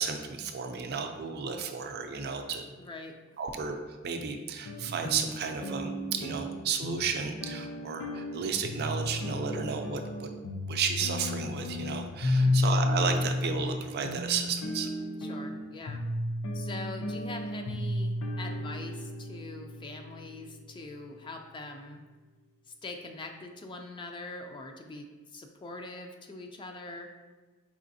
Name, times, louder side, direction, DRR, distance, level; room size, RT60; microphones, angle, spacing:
voice 1, 0.0-2.7 3.4-3.8 4.0-10.3 10.7-14.9, right 6 dB, 50° right, 5 dB, 0.4 m, -33 dB
voice 2, 2.8-3.2 12.4-12.8 15.2-16.0 16.5-22.0 22.7-27.1, left 2 dB, 25° left, 4 dB, 0.3 m, -43 dB
sound 1, 4.6-20.9, left 1 dB, 75° left, 0.5 m, -33 dB
4.8 x 3.2 x 2.6 m, 1.3 s
head